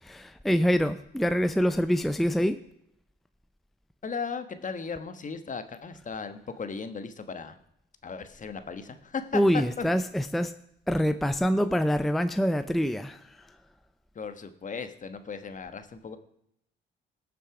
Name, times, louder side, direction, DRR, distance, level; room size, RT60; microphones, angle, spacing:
voice 1, 0.0-2.6 9.3-10.5 10.9-13.5, equal, ahead, 0.5 m, -25 dB
voice 2, 4.0-7.6 8.0-9.8 14.1-16.2, left 5 dB, 40° left, 1.3 m, -36 dB
19.0 x 6.7 x 4.9 m
cardioid pair, 90°, 20 cm